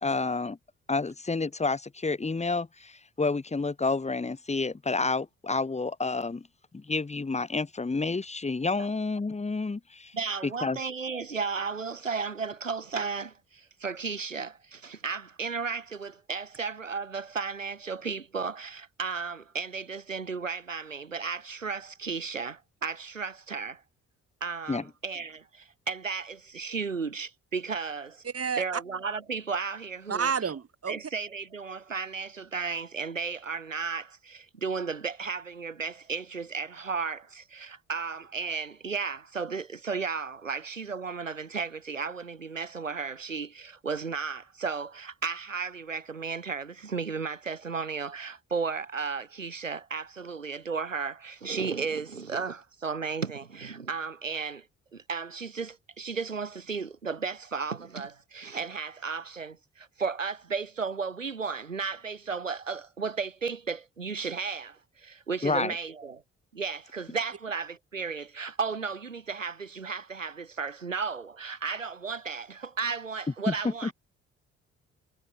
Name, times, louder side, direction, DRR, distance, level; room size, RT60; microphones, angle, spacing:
voice 1, 0.0-0.6 0.9-6.5 6.7-10.1 10.6-10.8 24.7-24.8 65.4-65.8 73.5-73.9, left 3 dB, 15° left, 1.7 m, -29 dB
voice 2, 10.1-23.8 24.4-28.2 28.6-30.3 30.9-54.7 54.9-66.2 66.5-73.9, right 5 dB, 90° right, 1.2 m, -34 dB
voice 3, 28.2-28.8 30.1-31.0, right 6 dB, 40° right, 5.3 m, -30 dB
figure-of-eight pair, 40°, 37 cm